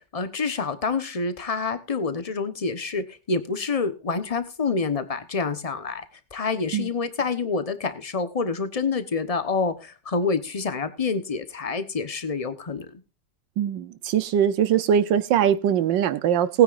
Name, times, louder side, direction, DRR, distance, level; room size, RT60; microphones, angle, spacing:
voice 1, 0.1-6.0 6.3-12.9, left 4 dB, 25° left, 1.0 m, -27 dB
voice 2, 13.6-16.6, right 9 dB, 85° right, 1.6 m, -21 dB
19.5 x 9.2 x 2.6 m
omnidirectional pair, 2.0 m